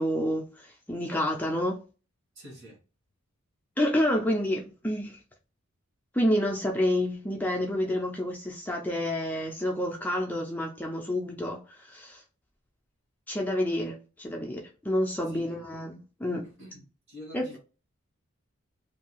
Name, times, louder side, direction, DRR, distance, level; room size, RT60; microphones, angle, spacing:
voice 1, 0.0-1.8 3.8-5.2 6.1-12.2 13.3-16.4 17.3-17.4, left 1 dB, 5° left, 0.3 m, -29 dB
voice 2, 2.3-2.8 15.3-15.8 16.6-17.6, equal, 55° right, 1.3 m, -47 dB
2.6 x 2.3 x 2.9 m
head